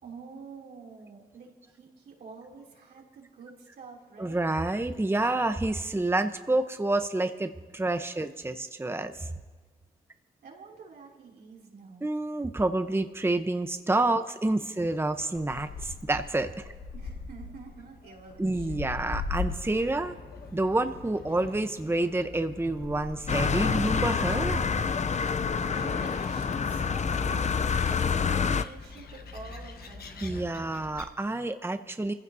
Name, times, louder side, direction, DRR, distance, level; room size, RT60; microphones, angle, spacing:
voice 1, 0.0-4.4 10.4-12.1 16.9-18.9 25.6-30.4, right 4 dB, 85° right, -2 dB, 3.0 m, -48 dB
voice 2, 4.2-9.3 12.0-16.6 18.4-20.1 20.5-24.6 30.2-32.1, right 2 dB, 15° right, 8 dB, 0.8 m, -28 dB
Gull seagull, 15.3-31.1, left 4 dB, 85° left, 1.2 m, -42 dB
sound 1, 23.3-28.6, left 6 dB, 45° left, 0.6 m, -27 dB
25.5 x 15.0 x 2.7 m, 1.4 s
cardioid pair, 50°, 16 cm